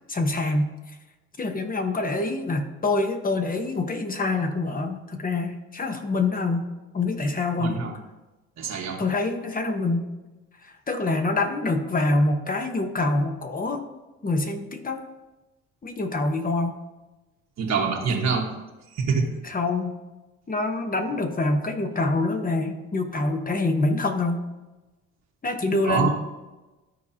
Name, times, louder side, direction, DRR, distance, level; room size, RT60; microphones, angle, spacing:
voice 1, 0.1-0.7 1.4-6.6 6.9-7.8 9.0-10.1 10.6-13.8 14.2-15.0 15.8-16.7 19.4-20.0 20.5-24.4 25.4-26.1, left 2 dB, 30° left, 6 dB, 1.0 m, -25 dB
voice 2, 7.6-7.9 8.6-9.0 17.6-18.5 18.9-19.3 25.8-26.1, right 5 dB, 60° right, -1 dB, 1.4 m, -25 dB
13.0 x 4.8 x 2.8 m, 1.1 s
cardioid pair, 90°, 30 cm